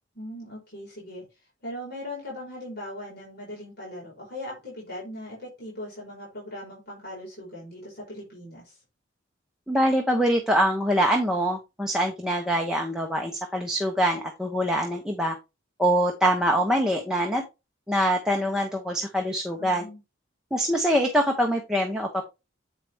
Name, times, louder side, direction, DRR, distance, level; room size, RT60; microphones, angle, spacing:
voice 1, 0.2-1.2 1.6-8.8 19.6-20.0, left 1 dB, 50° left, -6 dB, 4.5 m, -39 dB
voice 2, 9.7-15.4 15.8-17.4 17.9-19.9 20.5-22.2, equal, 5° right, 1 dB, 0.9 m, -24 dB
8.1 x 4.9 x 3.4 m, 0.26 s
head